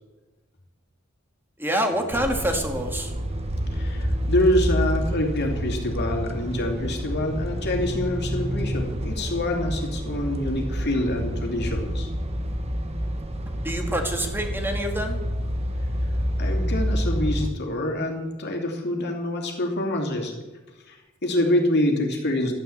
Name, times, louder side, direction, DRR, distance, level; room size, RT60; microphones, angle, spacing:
voice 1, 1.6-3.1 13.6-15.2, equal, 10° right, 4 dB, 1.8 m, -26 dB
sound 1, 1.8-12.2, left 1 dB, 55° right, 2.7 m, -44 dB
sound 2, 2.1-17.5, equal, 30° right, 1.2 m, -28 dB
voice 2, 3.7-12.1 16.4-20.4 20.9-22.5, left 1 dB, 55° left, 2 dB, 2.8 m, -26 dB
12.0 x 9.5 x 8.6 m, 1.2 s
head